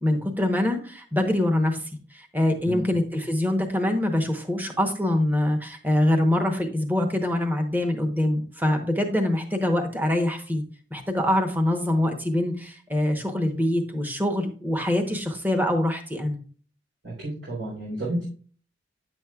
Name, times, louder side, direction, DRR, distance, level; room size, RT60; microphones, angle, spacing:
voice 1, 0.0-1.8 2.1-10.6 10.9-16.4, left 1 dB, 10° right, 5 dB, 0.9 m, -24 dB
voice 2, 17.0-18.2, right 1 dB, 80° right, -6 dB, 3.5 m, -31 dB
9.5 x 7.1 x 2.3 m, 0.42 s
head